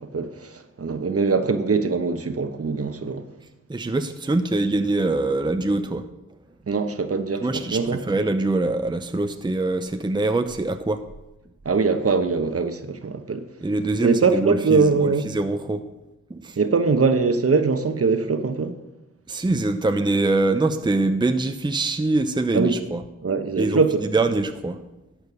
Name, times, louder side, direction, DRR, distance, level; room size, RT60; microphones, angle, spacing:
voice 1, 0.0-3.2 6.7-8.0 11.6-13.5 14.0-15.3 16.6-18.7 22.5-22.7 23.2-24.0, right 4 dB, 45° right, 1.1 m, -22 dB
voice 2, 3.7-6.1 7.4-11.0 13.6-15.8 16.3-16.6 19.3-23.0 23.6-24.8, right 2 dB, 15° right, 0.7 m, -24 dB
12.0 x 4.5 x 7.0 m
supercardioid pair, 40°, 32 cm